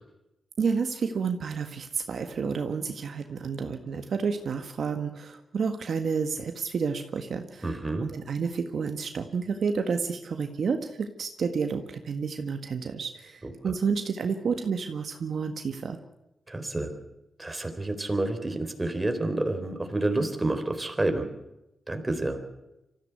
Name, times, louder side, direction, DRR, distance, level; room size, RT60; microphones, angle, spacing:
voice 1, 0.6-7.7 8.0-16.0, right 5 dB, 65° right, 6 dB, 1.7 m, -30 dB
voice 2, 7.6-8.1 13.4-13.7 16.5-16.9 17.4-21.3 21.9-22.4, right 2 dB, 20° right, 6 dB, 3.9 m, -29 dB
25.0 x 15.0 x 8.1 m, 0.94 s
cardioid pair, 90°, 0 cm